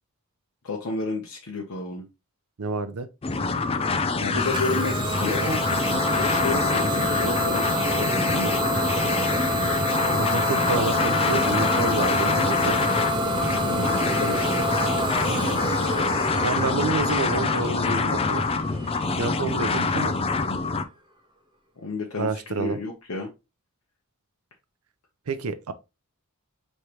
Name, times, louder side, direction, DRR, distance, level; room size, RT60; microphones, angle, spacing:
voice 1, 0.6-2.1 4.2-5.6 6.2-8.7 13.7-14.7 21.8-23.3, left 3 dB, 75° left, 0.8 m, -31 dB
voice 2, 2.6-3.1 10.2-12.8 15.2-15.6 16.4-18.4 19.1-20.1 22.2-22.8 25.3-25.7, right 4 dB, 80° right, 0.6 m, -29 dB
sound 1, 3.2-20.8, left 4 dB, 25° left, 0.4 m, -26 dB
Idling / Domestic sounds home sounds, 4.3-19.9, equal, 20° right, 0.7 m, -27 dB
4.9 x 3.2 x 2.9 m
head